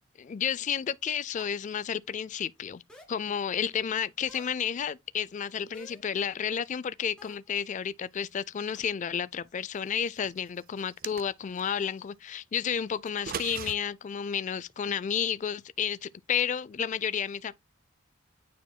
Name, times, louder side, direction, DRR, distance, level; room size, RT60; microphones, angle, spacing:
voice 1, 0.2-2.8 3.1-17.5, left 8 dB, 40° left, 0.3 m, -31 dB
sound 1, 1.4-1.7 2.9-3.3 4.3-4.6 5.7-6.1 7.2-7.5 8.7-8.9 10.2-10.3, left 1 dB, 5° left, 1.6 m, -52 dB
sound 2, 10.8-11.7 13.1-13.8, right 8 dB, 45° right, 0.4 m, -38 dB
9.1 x 4.8 x 2.2 m
head